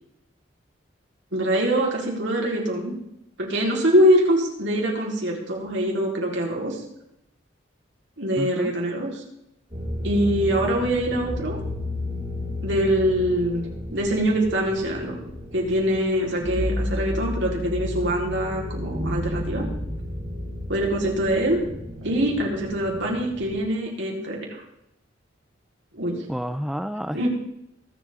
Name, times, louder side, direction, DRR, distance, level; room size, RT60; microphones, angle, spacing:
voice 1, 1.3-2.9 3.4-6.8 8.2-9.2 10.0-11.6 12.6-15.2 15.5-19.7 20.7-21.6 22.0-24.6 25.9-26.2 27.1-27.3, equal, 70° right, -2 dB, 4.2 m, -24 dB
voice 2, 8.4-8.7 26.3-27.3, equal, ahead, 10 dB, 0.4 m, -29 dB
sound 1, 9.7-23.6, left 1 dB, 35° right, 6.6 m, -32 dB
23.5 x 8.4 x 3.8 m, 0.82 s
head